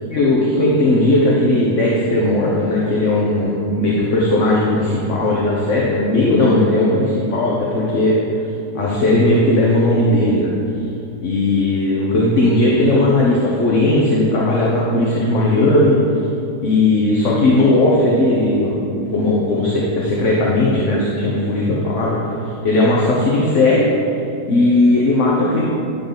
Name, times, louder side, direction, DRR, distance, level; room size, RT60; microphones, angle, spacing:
voice 1, 0.1-8.2 8.7-10.5 11.2-16.0 16.6-22.2 22.6-23.9 24.4-25.6, left 2 dB, 50° left, -5 dB, 1.4 m, -16 dB
11.5 x 4.0 x 6.9 m, 2.7 s
omnidirectional pair, 1.7 m